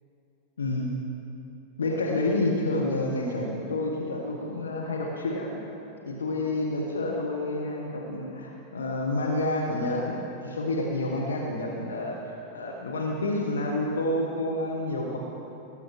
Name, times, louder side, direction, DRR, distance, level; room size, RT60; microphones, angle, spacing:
voice 1, 0.6-0.9 1.8-5.6 6.0-15.2, left 2 dB, 70° left, -2 dB, 1.3 m, -29 dB
19.0 x 7.7 x 4.7 m, 2.8 s
figure-of-eight pair, 90°, 0 cm